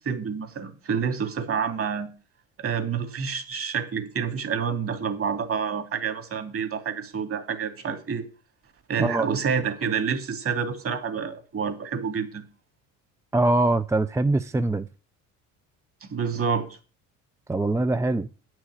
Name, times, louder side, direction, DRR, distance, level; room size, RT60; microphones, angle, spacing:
voice 1, 0.0-2.1 2.6-8.3 8.9-12.4 16.0-16.7, right 6 dB, 40° right, 2.7 m, -28 dB
voice 2, 13.3-14.9 17.5-18.3, right 2 dB, 10° right, 0.5 m, -23 dB
9.7 x 6.3 x 8.0 m
supercardioid pair, 90°, 33 cm